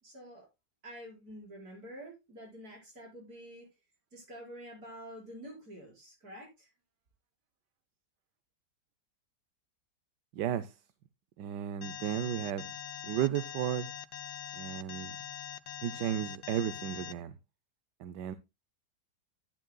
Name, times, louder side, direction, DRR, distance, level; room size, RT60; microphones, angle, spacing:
voice 1, 0.0-0.5 0.8-3.7 4.1-6.7, equal, 60° right, 5.7 m, -48 dB
voice 2, 10.3-10.7 11.4-12.6 13.0-13.9 14.5-15.2 15.8-17.3 18.0-18.4, right 11 dB, 85° right, 1.3 m, -33 dB
Alarm, 11.8-17.1, left 11 dB, 75° left, 1.3 m, -43 dB
12.5 x 9.1 x 2.3 m
omnidirectional pair, 1.8 m